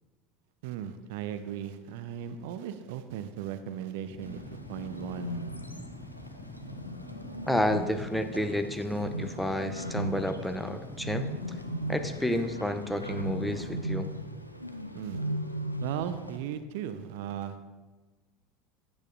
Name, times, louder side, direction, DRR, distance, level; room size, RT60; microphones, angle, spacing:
voice 1, 0.6-4.4 4.7-5.4 14.9-15.2 15.8-17.6, right 9 dB, 60° right, 11 dB, 0.3 m, -37 dB
sound 1, 4.1-13.9, left 2 dB, 50° left, 1.1 m, -45 dB
Bird, 4.2-16.4, right 1 dB, 90° left, 0.3 m, -37 dB
voice 2, 7.5-11.3 11.9-14.1, equal, 5° left, 7 dB, 0.5 m, -30 dB
8.9 x 7.1 x 2.5 m, 1.3 s
figure-of-eight pair, 70°, 0 cm